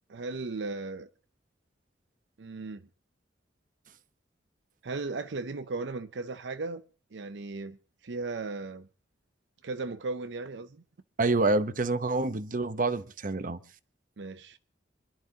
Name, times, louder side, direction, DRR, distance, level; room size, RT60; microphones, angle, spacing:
voice 1, 0.1-1.1 2.4-2.8 4.8-6.8 7.1-7.8 8.0-8.9 9.6-10.8 14.2-14.6, right 3 dB, 75° right, 0.6 m, -36 dB
voice 2, 11.2-13.6, right 2 dB, 45° right, 0.9 m, -27 dB
26.5 x 11.5 x 2.8 m
head